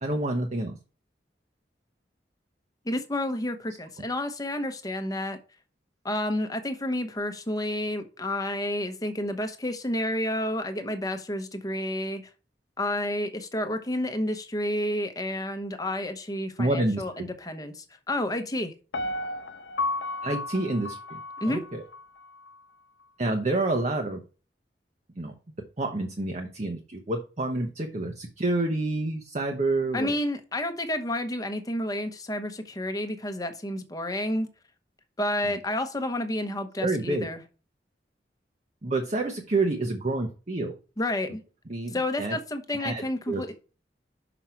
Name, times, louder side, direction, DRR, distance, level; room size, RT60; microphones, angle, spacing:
voice 1, 0.0-0.7 16.6-17.2 20.2-21.2 21.4-21.8 23.2-24.2 25.2-25.3 25.8-30.1 35.4-35.5 36.8-37.3 38.8-40.7 41.7-42.4 42.8-43.5, right 2 dB, 40° right, 0.9 m, -28 dB
voice 2, 2.8-5.4 6.0-12.3 12.8-18.7 21.4-21.6 29.9-34.5 35.2-37.4 41.0-41.4 41.9-43.5, left 1 dB, 20° left, 1.0 m, -30 dB
Piano, 18.9-22.0 22.5-22.6, left 2 dB, 85° left, 0.6 m, -33 dB
6.0 x 5.4 x 4.4 m
head